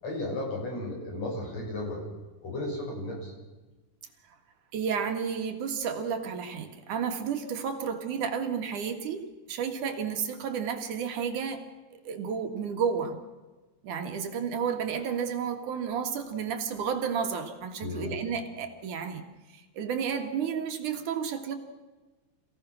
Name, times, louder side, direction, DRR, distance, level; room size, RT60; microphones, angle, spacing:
voice 1, 0.0-2.0 2.4-3.3 17.8-18.1, left 2 dB, 55° left, -1 dB, 7.6 m, -34 dB
voice 2, 4.7-9.2 9.5-11.6 11.9-13.2 13.8-19.2 19.5-21.6, right 7 dB, 80° right, 5 dB, 3.3 m, -31 dB
27.5 x 17.0 x 6.3 m, 1.2 s
omnidirectional pair, 3.5 m